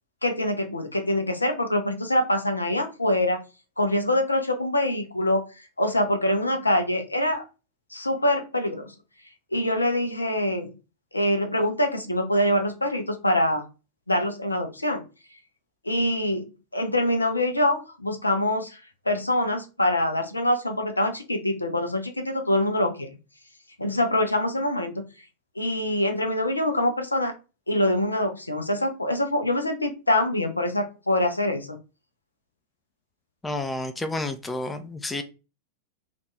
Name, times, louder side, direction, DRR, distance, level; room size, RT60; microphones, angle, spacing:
voice 1, 0.2-3.4 3.8-5.4 5.8-7.4 7.9-8.9 9.5-10.7 11.1-13.6 14.1-15.0 15.8-18.8 19.1-23.1 23.8-25.0 25.6-27.3 27.7-31.8, left 1 dB, 85° left, 0.6 m, -24 dB
voice 2, 33.4-35.2, left 2 dB, 10° left, 0.4 m, -30 dB
3.4 x 2.4 x 3.1 m
figure-of-eight pair, 90°, 0 cm